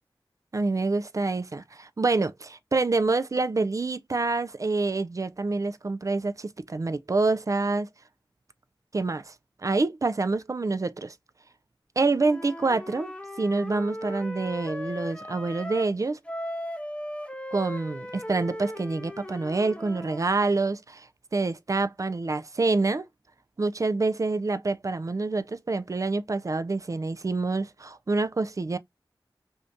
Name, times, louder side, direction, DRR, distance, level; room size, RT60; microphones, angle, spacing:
voice 1, 0.5-7.9 8.9-9.3 9.6-11.1 12.0-16.2 17.5-21.1 21.3-23.1 23.6-28.8, right 3 dB, 40° right, 0.3 m, -27 dB
Wind instrument woodwind instrument, 12.2-15.9 16.2-20.3, equal, 15° left, 0.6 m, -37 dB
2.6 x 2.6 x 3.4 m
wide cardioid pair, 50°, 9 cm